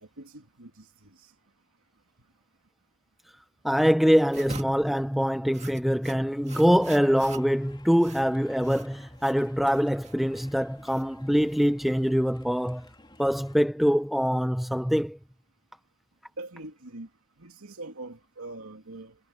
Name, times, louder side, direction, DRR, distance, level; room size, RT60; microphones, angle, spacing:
voice 1, 0.0-1.3 16.4-17.1 17.4-19.2, right 2 dB, 90° right, 2.7 m, -43 dB
voice 2, 3.6-12.9 13.2-15.2, equal, ahead, 0.5 m, -24 dB
sound 1, 4.3-12.2, right 4 dB, 35° right, 1.8 m, -47 dB
sound 2, 6.5-13.6, left 1 dB, 20° left, 3.3 m, -53 dB
head